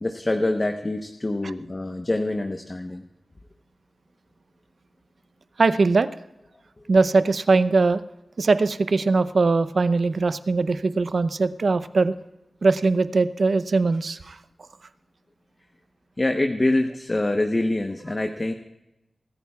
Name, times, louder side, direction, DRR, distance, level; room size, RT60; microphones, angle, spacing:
voice 1, 0.0-3.0 6.8-6.9 16.2-18.5, left 2 dB, 35° left, 5 dB, 0.9 m, -25 dB
voice 2, 5.6-6.1 6.9-8.0 8.4-12.1 12.6-14.4, right 3 dB, 70° right, 13 dB, 0.6 m, -21 dB
24.0 x 14.0 x 2.4 m, 0.92 s
wide cardioid pair, 80°, 0 cm